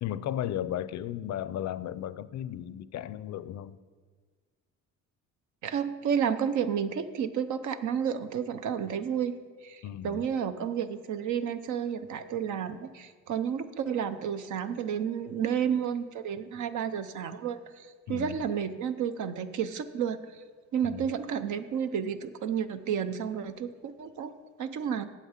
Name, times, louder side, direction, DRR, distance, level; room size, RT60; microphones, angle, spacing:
voice 1, 0.0-3.8 9.8-10.2 18.1-18.4 20.8-21.1, left 11 dB, 65° left, 17 dB, 0.5 m, -35 dB
voice 2, 5.6-9.3 9.6-20.4 20.7-25.0, right 8 dB, 75° right, 10 dB, 0.7 m, -31 dB
8.4 x 7.8 x 7.3 m, 1.5 s
cardioid pair, 90°, 30 cm